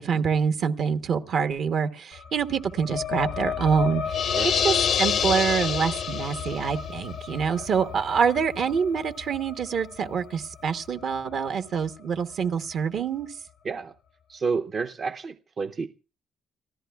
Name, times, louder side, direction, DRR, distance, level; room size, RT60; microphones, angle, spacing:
voice 1, 0.0-4.3 4.5-13.3, right 6 dB, 65° right, 1.0 m, -26 dB
sound 1, 2.1-13.2, left 7 dB, 90° left, 1.1 m, -35 dB
sound 2, 4.1-6.7, left 8 dB, 65° left, 0.6 m, -26 dB
voice 2, 14.3-15.9, right 5 dB, 45° right, 0.6 m, -30 dB
29.5 x 14.0 x 2.4 m
cardioid pair, 90°, 0 cm